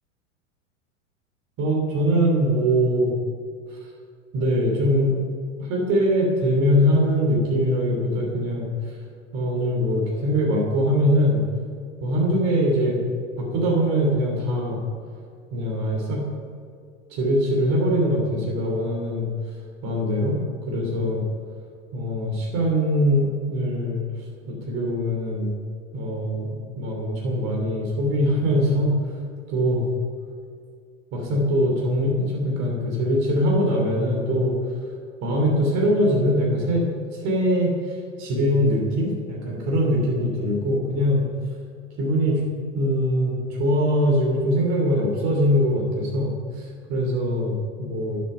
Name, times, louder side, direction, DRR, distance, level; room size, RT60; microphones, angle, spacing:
voice 1, 1.6-3.1 4.3-5.1 5.6-8.7 9.3-11.4 12.0-13.0 13.4-14.8 15.5-16.2 17.1-19.3 19.8-20.4 20.7-21.2 21.9-24.0 24.5-25.5 25.9-26.5 26.7-29.0 29.5-29.8 31.1-34.5 35.2-36.9 37.1-41.2 42.0-42.4 42.7-48.2, equal, 45° right, -1 dB, 3.1 m, -22 dB
10.0 x 8.5 x 5.6 m, 2.2 s
hypercardioid pair, 85°, 38 cm